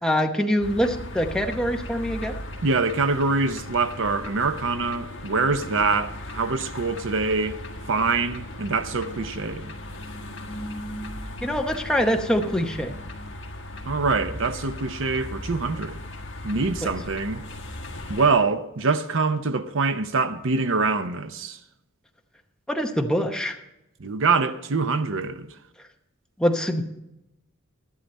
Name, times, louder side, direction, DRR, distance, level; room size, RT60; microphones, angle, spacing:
voice 1, 0.0-2.4 11.4-12.9 16.8-16.9 22.7-23.6 26.4-26.8, equal, 5° left, 0.8 m, -24 dB
sound 1, 0.6-18.3, left 1 dB, 60° left, 1.7 m, -37 dB
voice 2, 2.6-7.6 7.9-9.7 13.8-16.0 16.4-17.4 18.1-21.6 24.0-25.5, right 4 dB, 60° right, 0.7 m, -24 dB
13.0 x 11.5 x 4.1 m
head